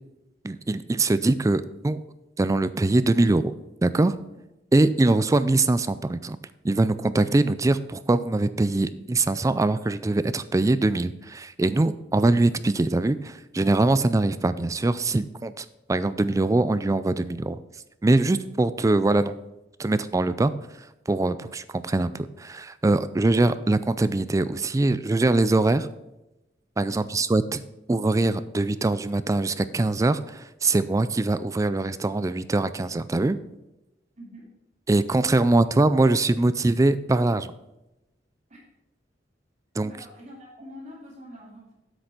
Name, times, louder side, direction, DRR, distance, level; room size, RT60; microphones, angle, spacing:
voice 1, 0.4-2.0 2.4-3.5 3.8-4.2 4.7-6.4 6.6-17.6 18.0-19.3 19.8-20.5 21.1-25.9 26.8-27.6 27.9-33.4 34.9-37.5 39.8-39.9, right 2 dB, 20° right, 14 dB, 0.3 m, -22 dB
voice 2, 26.9-27.3 34.2-34.5 38.5-38.6 39.8-41.7, equal, 40° right, -3 dB, 2.5 m, -45 dB
7.9 x 6.5 x 5.7 m, 0.95 s
head